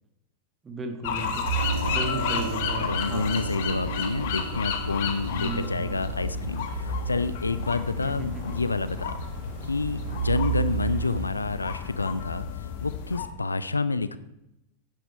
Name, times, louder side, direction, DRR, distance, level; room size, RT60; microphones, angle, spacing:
voice 1, 0.6-1.5 1.9-3.4 5.3-5.9 8.0-8.6, right 2 dB, 20° right, 6 dB, 1.5 m, -35 dB
sound 1, 1.0-13.3, left 7 dB, 50° left, 1.3 m, -33 dB
sound 2, 1.4-11.3, right 8 dB, 50° right, 3.2 m, -34 dB
sound 3, 1.6-9.9, right 4 dB, 75° right, 0.6 m, -38 dB
voice 2, 2.8-9.2 9.7-12.5 12.8-14.2, left 3 dB, 80° left, 15 dB, 0.5 m, -29 dB
10.0 x 9.1 x 4.2 m, 0.85 s
figure-of-eight pair, 90°, 0 cm